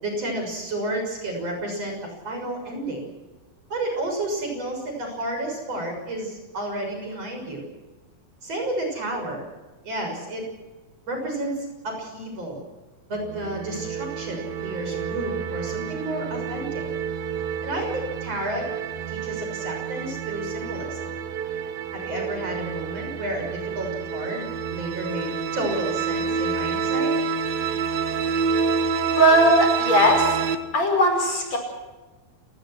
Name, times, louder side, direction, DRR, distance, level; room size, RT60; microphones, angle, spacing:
voice 1, 0.0-3.1 3.7-7.7 8.4-9.4 9.8-10.5 11.1-12.6 13.1-16.8 17.6-18.7 19.1-21.0 21.9-27.1, right 1 dB, 45° right, 2 dB, 7.6 m, -31 dB
sound 1, 13.2-30.6, right 6 dB, 80° right, 3.2 m, -28 dB
voice 2, 29.1-30.4 30.7-31.6, equal, 45° left, 3 dB, 6.5 m, -18 dB
29.5 x 19.5 x 6.2 m, 1.2 s
omnidirectional pair, 4.2 m